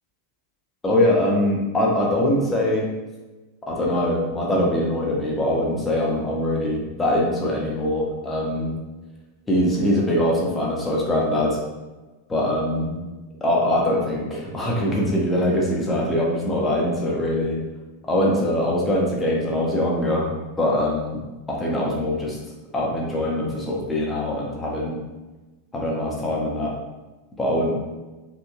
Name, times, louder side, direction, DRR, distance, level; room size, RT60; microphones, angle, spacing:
voice 1, 0.8-2.9 3.7-8.7 9.5-11.6 12.3-13.0 13.4-17.6 18.0-21.2 21.5-22.4 22.7-25.0 25.7-26.7 27.4-27.7, left 1 dB, 15° left, -3 dB, 0.8 m, -22 dB
3.4 x 3.0 x 2.3 m, 1.2 s
figure-of-eight pair, 90°, 0 cm